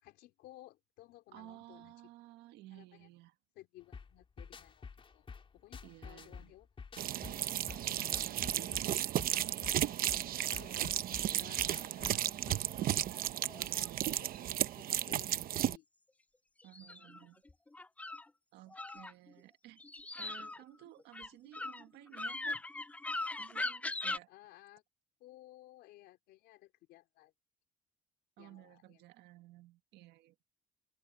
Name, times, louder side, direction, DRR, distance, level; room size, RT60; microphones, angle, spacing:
voice 1, 0.0-1.9 2.7-3.1 3.6-5.3 5.5-6.7 7.1-7.5 8.4-8.8 10.5-10.9 11.3-12.3 13.4-14.3 14.6-15.9 24.3-24.8 25.2-27.3 28.4-29.0, left 16 dB, 85° left, 4.1 m, -58 dB
voice 2, 1.3-3.4 5.8-6.5 8.0-9.5 11.4-12.2 13.5-14.2 16.6-17.4 18.5-19.8 20.1-22.5 23.4-24.3 28.4-30.4, right 16 dB, 85° right, 1.8 m, -55 dB
sound 1, 3.9-12.8, left 5 dB, 30° left, 4.0 m, -50 dB
sound 2, 7.0-15.8, right 12 dB, 60° right, 0.8 m, -34 dB
sound 3, 12.9-13.9 16.6-18.3 18.7-19.4 19.8-24.2, left 2 dB, 10° left, 0.3 m, -40 dB
open air
cardioid pair, 110°, 17 cm